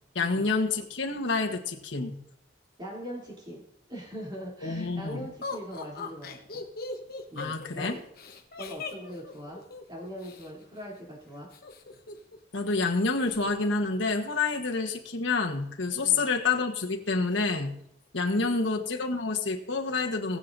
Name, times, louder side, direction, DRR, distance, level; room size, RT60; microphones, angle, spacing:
voice 1, 0.1-2.2 4.6-5.3 7.3-8.0 12.5-17.8 18.1-20.4, left 3 dB, 80° left, 2 dB, 1.3 m, -28 dB
voice 2, 2.8-3.6 3.9-6.6 7.3-8.0 8.6-9.6 9.9-11.5 16.0-16.3 18.4-18.8, equal, 25° right, -3 dB, 3.2 m, -41 dB
Laughter, 5.4-10.5 11.5-12.4 12.7-12.8 13.1-13.6, left 3 dB, 55° left, 1.2 m, -40 dB
19.5 x 7.5 x 2.7 m, 0.73 s
head